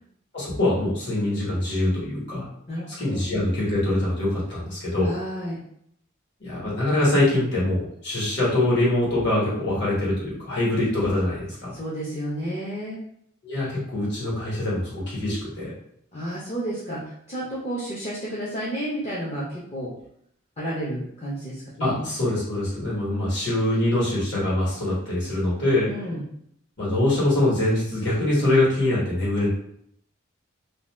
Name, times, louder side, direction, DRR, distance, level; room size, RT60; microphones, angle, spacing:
voice 1, 0.3-2.4 3.0-5.1 6.4-11.7 13.4-15.7 21.8-25.9 26.8-29.5, left 1 dB, 60° left, -8 dB, 1.4 m, -24 dB
voice 2, 2.7-3.2 5.0-5.6 11.7-13.0 16.1-19.9 20.6-22.0 25.8-26.3, equal, 30° left, -6 dB, 0.6 m, -31 dB
2.7 x 2.1 x 3.1 m, 0.71 s
head